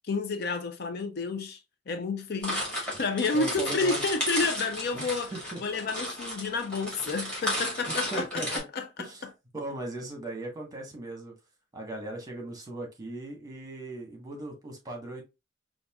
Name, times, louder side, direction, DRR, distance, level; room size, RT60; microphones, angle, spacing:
voice 1, 0.1-1.6 1.9-5.3 5.6-9.3, left 4 dB, 55° left, 0.5 m, -30 dB
sound 1, 2.4-8.6, equal, 5° left, 1.9 m, -33 dB
voice 2, 3.3-4.0 4.9-5.6 7.9-8.6 9.0-9.2 9.5-11.3 11.7-15.2, right 2 dB, 20° right, 1.1 m, -38 dB
5.2 x 2.5 x 2.3 m
head